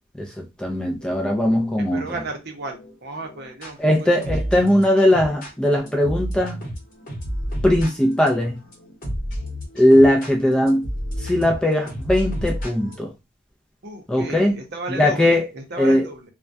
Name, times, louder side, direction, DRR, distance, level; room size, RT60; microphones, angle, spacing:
voice 1, 0.2-2.0 3.8-6.6 7.6-8.6 9.8-10.9 11.2-13.1 14.1-14.6 14.9-15.5 15.8-16.0, left 1 dB, 5° left, 0.3 m, -19 dB
sound 1, 1.0-3.7 4.2-13.0, equal, 45° left, 0.9 m, -32 dB
voice 2, 1.9-4.1 13.8-16.2, right 2 dB, 55° right, 0.7 m, -34 dB
2.2 x 2.1 x 2.5 m
head